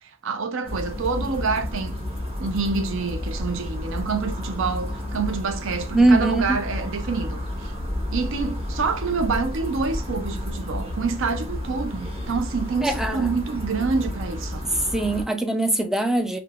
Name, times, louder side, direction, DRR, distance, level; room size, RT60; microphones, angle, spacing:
voice 1, 0.0-2.0 2.4-7.7 8.1-14.6, right 4 dB, 60° right, 0.5 m, -27 dB
sound 1, 0.6-15.2, left 1 dB, 25° right, 1.1 m, -31 dB
voice 2, 5.9-6.6 12.8-13.3 14.7-16.4, right 2 dB, ahead, 0.3 m, -21 dB
3.6 x 2.8 x 2.3 m
head